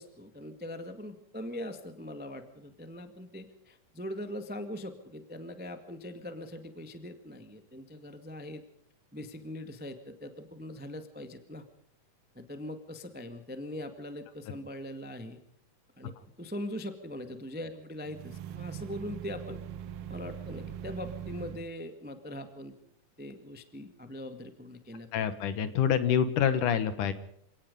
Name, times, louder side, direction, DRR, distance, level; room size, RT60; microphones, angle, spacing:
voice 1, 0.0-8.6 9.1-11.6 12.3-15.4 16.0-16.1 16.4-19.6 20.1-22.7 23.2-25.2, left 1 dB, 15° right, 8 dB, 0.3 m, -41 dB
sound 1, 18.0-21.7, right 9 dB, 80° right, 1.3 m, -41 dB
voice 2, 25.1-27.1, left 8 dB, 70° left, 12 dB, 2.6 m, -26 dB
28.0 x 18.0 x 5.3 m, 0.68 s
omnidirectional pair, 4.1 m